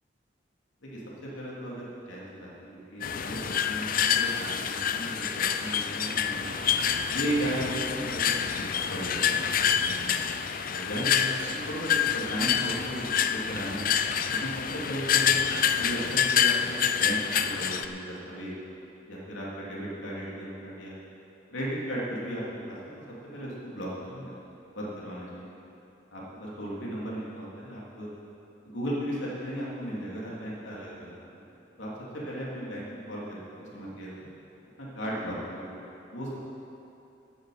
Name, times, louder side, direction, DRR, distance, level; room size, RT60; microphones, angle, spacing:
voice 1, 0.8-6.5 7.1-8.4 8.9-10.2 10.7-13.9 14.3-15.4 15.8-18.7 19.1-20.9 21.5-23.0 23.3-24.3 24.7-25.6 26.1-28.1 28.6-31.4 31.8-34.1 34.8-35.8 36.1-36.4, right 1 dB, 85° left, -6 dB, 3.1 m, -36 dB
sound 1, 3.0-17.9, left 8 dB, 45° left, 0.5 m, -27 dB
15.5 x 10.0 x 5.1 m, 2.8 s
head